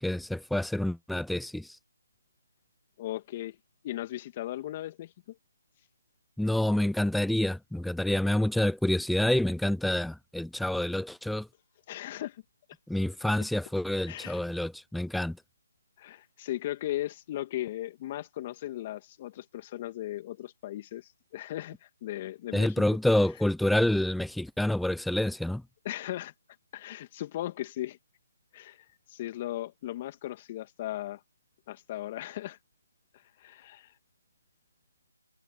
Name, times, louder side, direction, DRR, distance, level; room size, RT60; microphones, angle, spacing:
voice 1, 0.0-1.7 6.4-11.5 12.9-15.4 22.5-25.6, left 1 dB, ahead, 0.4 m, -27 dB
voice 2, 3.0-3.6 3.8-5.4 11.9-12.4 13.3-13.4 14.1-14.4 16.0-22.8 25.8-26.3 26.7-28.0 28.5-31.2 31.7-32.6 33.1-33.9, left 14 dB, 20° left, 2.3 m, -37 dB
figure-of-eight pair, 165°, 0 cm